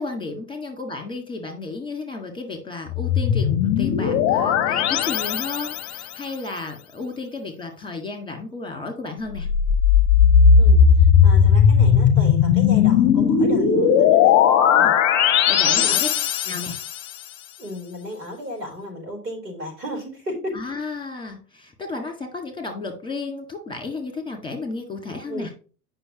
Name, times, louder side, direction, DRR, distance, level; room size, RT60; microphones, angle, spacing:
voice 1, 0.0-9.5 14.7-14.9 15.5-16.1 16.5-16.8 20.5-25.5, left 3 dB, 10° left, 5 dB, 1.8 m, -33 dB
sound 1, 2.9-6.0 9.3-17.0, left 7 dB, 30° left, 0.8 m, -17 dB
voice 2, 10.6-14.3 14.7-14.9 15.7-16.6 17.6-20.5 25.1-25.4, equal, 85° right, 1 dB, 4.2 m, -34 dB
9.4 x 5.8 x 3.0 m, 0.37 s
hypercardioid pair, 100°, 47 cm